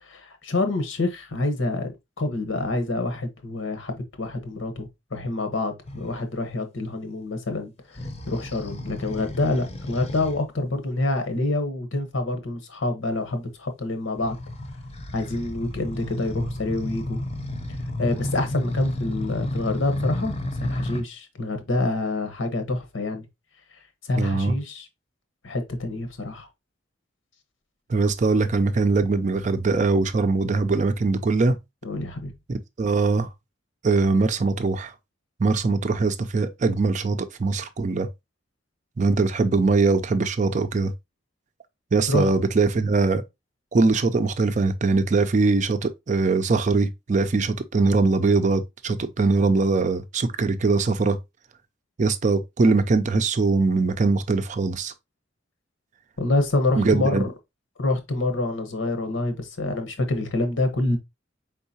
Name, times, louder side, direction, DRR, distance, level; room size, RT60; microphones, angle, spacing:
voice 1, 0.0-7.7 8.3-14.4 15.1-17.2 18.0-20.3 20.6-23.3 24.0-24.9 25.4-26.5 31.8-32.3 42.1-42.3 56.2-57.2 57.8-61.0, left 2 dB, 85° left, 1.1 m, -27 dB
sound 1, 5.8-6.2 7.9-10.4 14.2-21.0, left 1 dB, 35° left, 0.7 m, -31 dB
voice 2, 24.2-24.5 27.9-31.6 32.5-33.3 33.8-34.9 35.4-38.1 39.0-40.9 41.9-43.2 43.7-51.2 52.0-54.9 56.8-57.2, right 3 dB, 40° right, 0.4 m, -22 dB
4.6 x 3.8 x 2.7 m
head